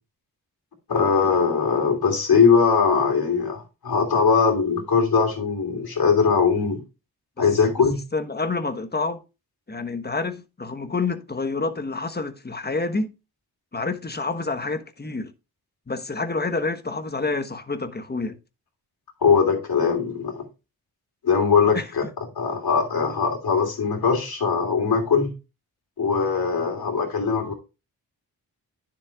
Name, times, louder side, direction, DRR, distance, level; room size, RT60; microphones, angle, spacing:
voice 1, 0.9-6.8 7.4-8.0 19.2-20.4 21.2-22.0 22.3-25.3 26.0-27.5, left 5 dB, 70° left, 3.1 m, -21 dB
voice 2, 8.1-9.2 9.7-13.1 13.7-15.3 15.9-18.4 21.7-21.9, left 3 dB, 25° left, 1.2 m, -28 dB
10.0 x 7.1 x 2.4 m
cardioid pair, 50°, 38 cm